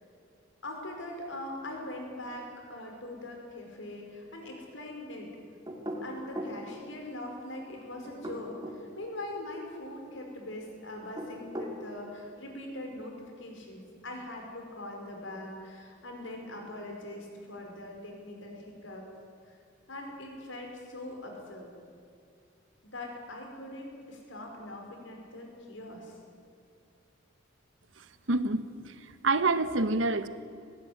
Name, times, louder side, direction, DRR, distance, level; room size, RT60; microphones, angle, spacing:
voice 1, 0.6-5.3 5.9-19.1 19.5-19.6 19.9-21.7 22.8-26.2, left 1 dB, 80° left, 2 dB, 5.2 m, -42 dB
sound 1, 5.7-6.6 8.1-8.8 11.0-11.8, equal, 20° right, 2.7 m, -38 dB
voice 2, 28.3-29.0 29.2-30.3, right 3 dB, 75° right, 12 dB, 1.1 m, -27 dB
20.0 x 17.0 x 9.6 m, 2.4 s
head